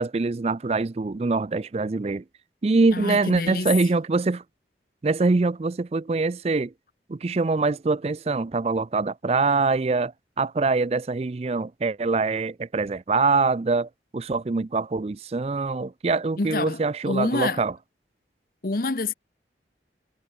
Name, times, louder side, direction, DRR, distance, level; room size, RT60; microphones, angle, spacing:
voice 1, 0.0-2.2 2.6-4.4 5.0-6.7 7.1-17.7, right 3 dB, 35° right, 0.4 m, -24 dB
voice 2, 2.9-3.7 16.4-17.6 18.6-19.1, left 3 dB, 50° left, 0.9 m, -27 dB
head